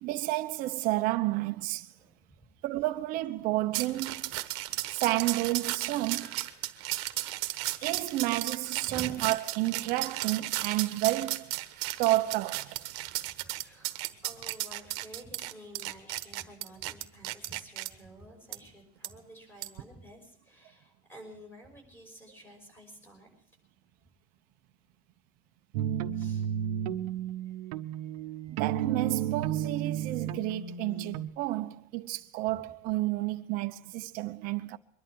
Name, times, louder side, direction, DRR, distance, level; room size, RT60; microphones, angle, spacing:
voice 1, 0.0-1.9 2.6-4.4 4.9-6.3 7.8-11.5 12.0-12.9 28.6-34.8, right 17 dB, 45° right, 0.8 m, -31 dB
voice 2, 1.9-2.5 5.0-5.1 5.5-6.8 8.8-9.2 13.0-23.3 26.1-27.0 27.5-28.5 32.5-32.6, right 1 dB, 10° left, 5.4 m, -51 dB
sound 1, 3.7-17.9 18.5-18.6 19.0-19.1 19.6-19.8, right 18 dB, 65° right, 1.2 m, -35 dB
sound 2, 25.7-31.3, right 10 dB, 85° right, 1.0 m, -32 dB
23.0 x 11.5 x 4.7 m
cardioid pair, 170°, 20 cm